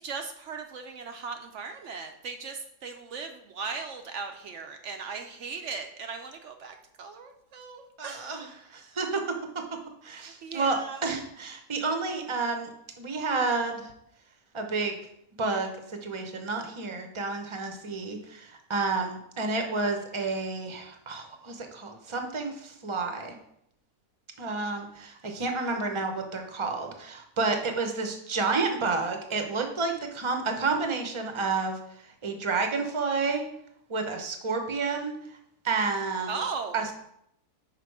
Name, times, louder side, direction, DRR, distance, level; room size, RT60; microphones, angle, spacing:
voice 1, 0.0-8.4 10.1-11.0 36.3-36.8, right 5 dB, 65° right, 6 dB, 0.7 m, -38 dB
voice 2, 8.0-9.2 10.0-12.7 13.0-13.9 14.5-14.9 15.4-23.4 24.4-31.8 32.2-33.4 33.9-35.2 35.6-36.4 36.7-36.9, right 4 dB, 25° right, 4 dB, 0.6 m, -30 dB
5.8 x 5.3 x 4.7 m, 0.75 s
omnidirectional pair, 1.7 m